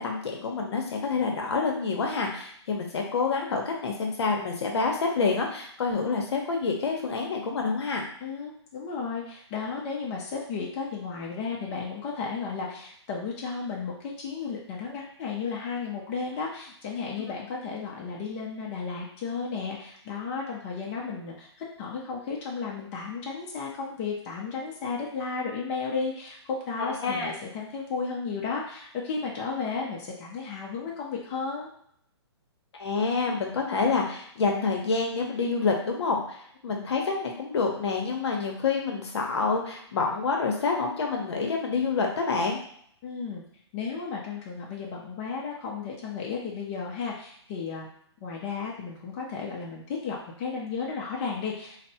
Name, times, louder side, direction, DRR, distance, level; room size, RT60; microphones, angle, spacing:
voice 1, 0.0-8.0 26.8-27.3 32.8-36.4 36.6-42.6, left 4 dB, 70° left, 1 dB, 0.8 m, -27 dB
voice 2, 8.2-31.7 43.0-43.4 43.7-47.9 48.2-51.8, left 5 dB, 30° left, -3 dB, 0.6 m, -34 dB
3.3 x 2.0 x 2.7 m, 0.66 s
hypercardioid pair, 150°, 15 cm